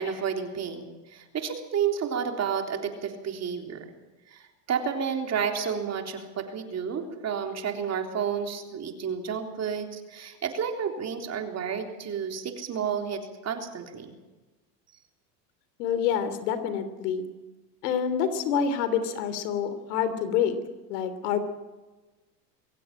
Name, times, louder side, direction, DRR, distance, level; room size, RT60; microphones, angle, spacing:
voice 1, 0.0-3.9 4.3-14.1, right 7 dB, 35° right, 4 dB, 3.7 m, -31 dB
voice 2, 15.8-17.3 17.8-20.5 20.9-21.4, left 8 dB, 75° left, 11 dB, 3.1 m, -27 dB
23.0 x 16.0 x 9.0 m, 1.2 s
supercardioid pair, 115°, 48 cm